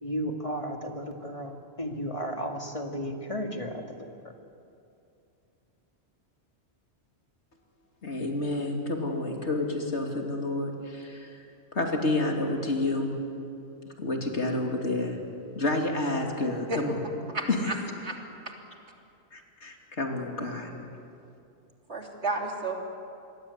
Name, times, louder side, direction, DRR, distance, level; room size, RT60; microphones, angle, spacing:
voice 1, 0.0-4.1, equal, 30° left, 3 dB, 2.2 m, -34 dB
voice 2, 8.0-11.4 11.7-13.1 14.0-15.2 15.5-17.0 17.5-17.7 19.3-20.7, left 2 dB, 75° left, 2 dB, 3.1 m, -29 dB
voice 3, 17.3-17.7 18.0-18.2 21.9-22.8, right 2 dB, 75° right, 1 dB, 3.3 m, -31 dB
26.5 x 21.0 x 8.4 m, 2.6 s
omnidirectional pair, 1.2 m